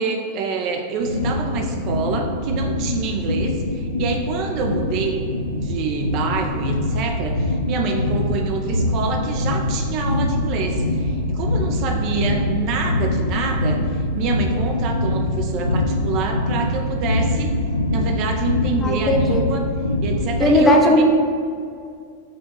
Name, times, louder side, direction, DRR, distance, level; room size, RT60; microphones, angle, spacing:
voice 1, 0.0-17.5 17.9-19.6 20.0-21.0, right 4 dB, 40° right, 3 dB, 0.7 m, -26 dB
sound 1, 1.0-20.5, left 1 dB, 85° left, 0.5 m, -23 dB
voice 2, 18.8-19.4 20.4-21.0, left 1 dB, 15° left, 2 dB, 0.8 m, -16 dB
6.8 x 3.7 x 5.4 m, 2.3 s
figure-of-eight pair, 90°, 0 cm